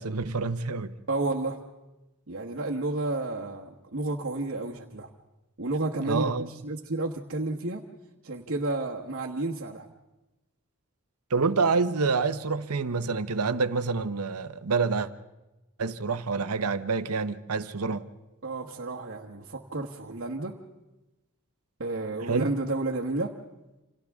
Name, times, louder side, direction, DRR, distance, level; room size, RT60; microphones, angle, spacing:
voice 1, 0.0-0.9 6.0-6.5 11.3-15.1 15.8-18.0 22.3-22.5, right 4 dB, 90° right, 0.9 m, -27 dB
voice 2, 1.1-1.6 2.3-5.1 5.6-6.3 6.6-7.8 8.2-9.8 18.4-20.6 21.8-23.4, right 2 dB, 60° right, 1.3 m, -31 dB
29.0 x 27.0 x 3.6 m
head